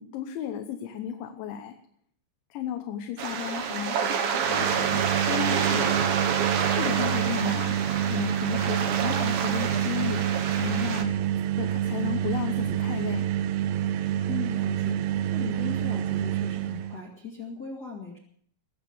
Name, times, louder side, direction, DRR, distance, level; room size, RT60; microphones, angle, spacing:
voice 1, 0.0-1.8 2.5-6.1 6.8-7.8 8.1-10.2 10.5-11.1 11.6-13.3, left 9 dB, 75° left, 5 dB, 3.3 m, -34 dB
sound 1, 3.2-11.0, right 7 dB, 65° right, 2.7 m, -28 dB
sound 2, 4.4-17.0, right 11 dB, 80° right, 2.4 m, -28 dB
voice 2, 14.3-18.2, left 4 dB, 35° left, -2 dB, 1.7 m, -39 dB
21.5 x 7.4 x 7.1 m, 0.63 s
omnidirectional pair, 5.5 m